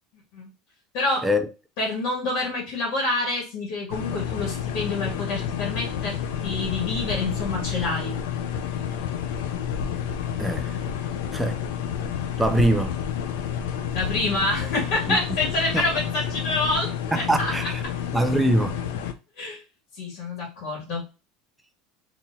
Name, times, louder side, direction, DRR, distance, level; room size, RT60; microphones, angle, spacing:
voice 1, 0.9-1.3 1.8-8.2 13.9-17.7 19.4-19.6 20.0-21.0, left 2 dB, 60° left, 1.7 m, -27 dB
sound 1, 3.9-19.1, left 8 dB, 85° left, 0.5 m, -30 dB
voice 2, 10.4-10.7 11.3-11.6 12.4-13.0 15.1-15.2 15.7-15.8 17.1-17.8 18.1-18.7, right 1 dB, 5° right, 0.5 m, -23 dB
4.2 x 2.9 x 2.6 m
supercardioid pair, 145°, 0 cm